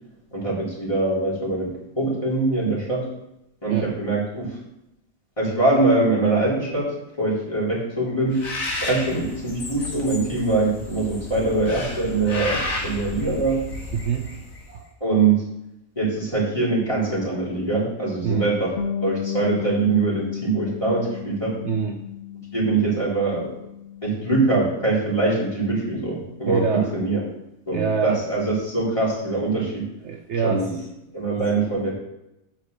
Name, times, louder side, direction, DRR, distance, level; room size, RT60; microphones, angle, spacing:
voice 1, 0.3-3.1 3.6-4.6 5.4-8.4 8.8-13.6 15.0-15.4 16.0-18.7 19.0-21.6 22.5-23.5 24.0-27.2 27.7-29.9 30.4-30.8 31.1-31.9, right 3 dB, 20° left, -6 dB, 3.8 m, -23 dB
Bird, 8.3-14.7, left 2 dB, 75° left, 2.1 m, -32 dB
voice 2, 13.9-14.4 14.7-14.8 18.2-18.5 21.6-22.1 26.4-26.9 27.7-28.2 30.0-30.7 31.4-31.5, right 6 dB, 60° right, 3 dB, 0.9 m, -25 dB
Bass guitar, 18.8-25.0, left 10 dB, 60° left, 0.8 m, -33 dB
8.5 x 5.8 x 6.6 m, 0.87 s
omnidirectional pair, 1.5 m